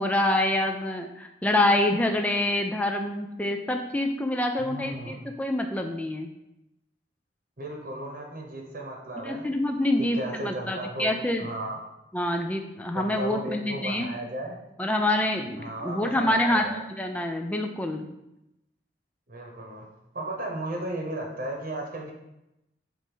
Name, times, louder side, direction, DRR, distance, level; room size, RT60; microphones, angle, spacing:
voice 1, 0.0-6.3 9.2-11.5 12.1-14.1 14.8-18.1, left 1 dB, 10° left, 4 dB, 0.4 m, -26 dB
voice 2, 4.6-5.2 7.6-9.5 10.0-11.1 11.4-11.8 12.9-14.6 15.6-16.8 19.3-19.9 20.1-22.1, right 1 dB, 50° right, 1 dB, 1.0 m, -35 dB
7.3 x 2.7 x 5.4 m, 0.90 s
head